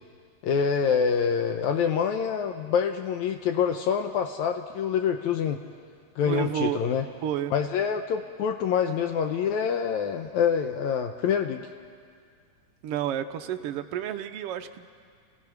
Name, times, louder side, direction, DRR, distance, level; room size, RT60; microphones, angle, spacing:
voice 1, 0.4-5.6 6.2-7.0 7.5-11.7, left 7 dB, 75° left, 6 dB, 2.1 m, -26 dB
voice 2, 6.2-6.8 7.2-7.5 12.8-14.9, right 10 dB, 80° right, 6 dB, 1.3 m, -30 dB
29.5 x 17.0 x 5.9 m, 2.1 s
omnidirectional pair, 3.5 m